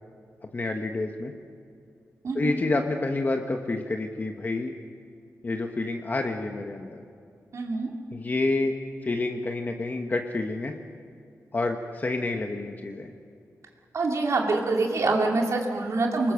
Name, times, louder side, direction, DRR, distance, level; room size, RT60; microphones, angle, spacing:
voice 1, 0.5-1.3 2.3-4.7 5.4-7.0 8.1-8.7 9.0-10.7 11.5-13.1, left 2 dB, 30° left, 3 dB, 1.2 m, -28 dB
voice 2, 7.5-7.9 13.9-16.3, right 3 dB, 60° right, 0 dB, 2.4 m, -25 dB
25.0 x 21.0 x 6.5 m, 2.4 s
wide cardioid pair, 150°, 6 cm